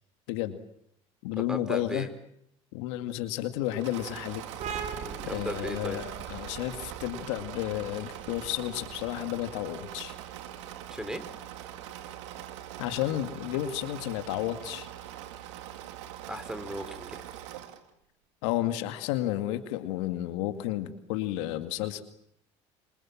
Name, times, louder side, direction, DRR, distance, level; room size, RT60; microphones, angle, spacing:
voice 1, 0.3-0.6 1.2-2.1 2.7-4.4 5.3-10.1 12.8-14.9 18.4-22.0, left 14 dB, 80° left, 9 dB, 2.2 m, -32 dB
voice 2, 1.4-2.1 5.0-6.0 10.9-11.2 16.3-17.2, equal, 5° right, 11 dB, 4.6 m, -36 dB
Engine / Mechanisms, 3.6-17.9, right 12 dB, 85° right, 2.4 m, -42 dB
sound 1, 4.6-11.9, right 6 dB, 55° right, 5.6 m, -43 dB
27.5 x 26.5 x 7.5 m, 0.74 s
hypercardioid pair, 75°, 15 cm